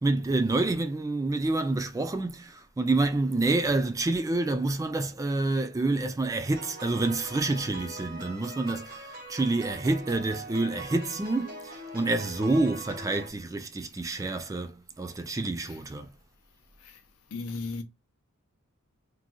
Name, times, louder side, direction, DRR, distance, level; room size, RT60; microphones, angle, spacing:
voice 1, 0.0-16.1, right 2 dB, 15° right, 0.3 m, -28 dB
sound 1, 6.5-13.3, right 2 dB, 40° right, 1.1 m, -42 dB
voice 2, 17.3-17.8, left 3 dB, 75° left, 0.6 m, -34 dB
3.0 x 2.5 x 2.2 m
head